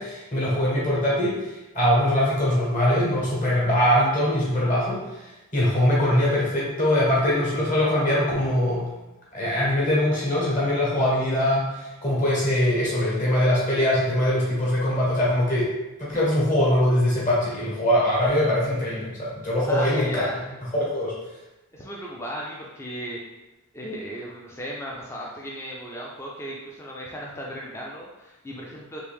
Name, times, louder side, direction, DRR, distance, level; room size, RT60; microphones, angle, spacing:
voice 1, 0.0-5.2 5.5-8.9 9.3-15.7 16.0-20.2 20.8-21.1, left 1 dB, 35° left, -6 dB, 1.1 m, -22 dB
voice 2, 19.7-20.5 21.7-23.2 23.7-29.0, equal, 10° left, -3 dB, 0.3 m, -35 dB
3.3 x 2.6 x 3.4 m, 1.0 s
head